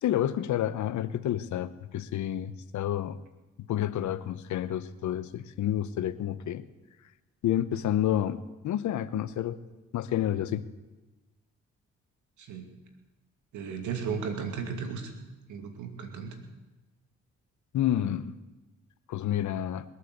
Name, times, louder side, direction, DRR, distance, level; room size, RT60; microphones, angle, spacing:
voice 1, 0.0-3.2 3.7-6.6 7.4-9.6 9.9-10.6 17.7-18.3 19.1-19.8, left 11 dB, 75° left, 14 dB, 0.9 m, -29 dB
voice 2, 13.5-15.1 15.5-16.4, right 6 dB, 80° right, 5 dB, 2.4 m, -35 dB
21.0 x 8.4 x 8.0 m, 1.1 s
supercardioid pair, 60°, 29 cm